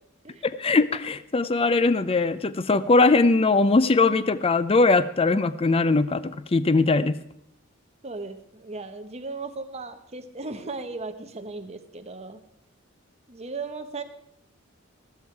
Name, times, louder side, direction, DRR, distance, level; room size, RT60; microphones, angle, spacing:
voice 1, 0.4-7.2, left 3 dB, 30° left, 14 dB, 0.5 m, -21 dB
voice 2, 8.0-12.4 13.3-14.0, right 3 dB, 30° right, 7 dB, 1.1 m, -36 dB
14.5 x 13.0 x 4.6 m, 0.74 s
head